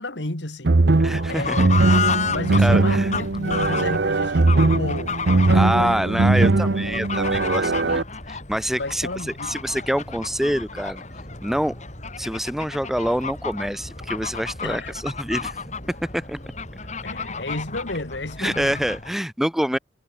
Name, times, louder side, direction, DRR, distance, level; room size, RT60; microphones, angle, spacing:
voice 1, 0.0-0.9 1.3-1.9 2.3-6.0 8.7-9.6 14.6-14.9 17.0-18.9, left 2 dB, 70° left, 2.7 m, -32 dB
sound 1, 0.6-8.0, right 3 dB, 65° right, 0.8 m, -20 dB
voice 2, 1.0-1.6 2.6-3.1 5.5-8.0 8.3-9.1 9.4-11.0 11.4-11.7 12.2-15.6 16.1-16.4 18.4-19.8, equal, ahead, 0.5 m, -26 dB
Fowl / Bird, 1.1-19.1, left 5 dB, 40° left, 4.7 m, -32 dB
head